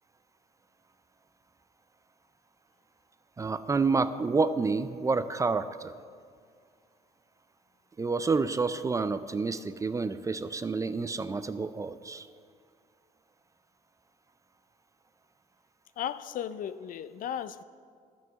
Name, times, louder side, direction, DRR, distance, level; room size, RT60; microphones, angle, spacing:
voice 1, 3.4-5.9 8.0-12.3, right 4 dB, 20° right, 0.4 m, -29 dB
voice 2, 16.0-17.6, left 9 dB, 55° left, 0.4 m, -35 dB
12.5 x 5.6 x 7.9 m
cardioid pair, 110°, 17 cm